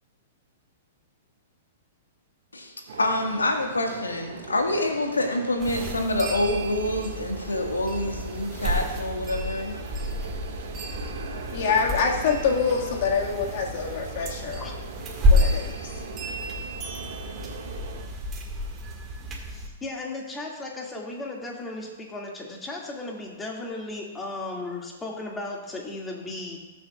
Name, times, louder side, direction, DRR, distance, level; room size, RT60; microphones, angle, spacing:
voice 1, 2.5-9.8, left 1 dB, 85° left, 3 dB, 1.7 m, -27 dB
sound 1, 2.9-18.0, right 5 dB, 60° right, 1.9 m, -41 dB
sound 2, 5.6-19.7, equal, 25° right, 1.9 m, -30 dB
voice 2, 11.5-14.7 15.3-16.0, left 5 dB, 55° left, 1 dB, 1.9 m, -26 dB
voice 3, 19.5-26.6, left 2 dB, 15° left, -1 dB, 2.3 m, -35 dB
20.0 x 7.2 x 2.4 m, 1.2 s
figure-of-eight pair, 110°, 0 cm